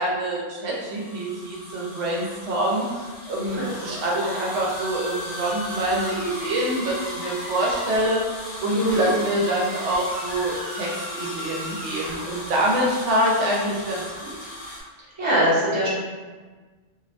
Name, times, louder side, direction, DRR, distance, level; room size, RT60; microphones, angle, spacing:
voice 1, 0.0-14.4, right 1 dB, 85° right, -3 dB, 0.9 m, -25 dB
sound 1, 0.7-14.8, left 1 dB, 45° left, 0.5 m, -38 dB
sound 2, 3.4-8.1 8.9-13.0, left 1 dB, 65° left, 1.2 m, -37 dB
voice 2, 8.7-9.1 15.2-15.9, right 1 dB, 30° right, -7 dB, 0.6 m, -22 dB
2.6 x 2.1 x 2.5 m, 1.4 s
omnidirectional pair, 1.2 m